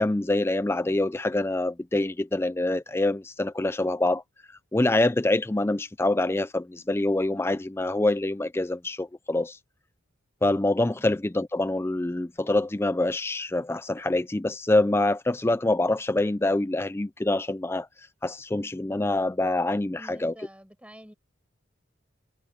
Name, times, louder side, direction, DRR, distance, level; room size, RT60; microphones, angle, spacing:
voice 1, 0.0-4.2 4.7-9.6 10.4-17.9 18.2-20.3, left 2 dB, 10° left, 0.4 m, -25 dB
voice 2, 10.8-11.2 19.9-21.1, equal, 5° right, 5.2 m, -48 dB
head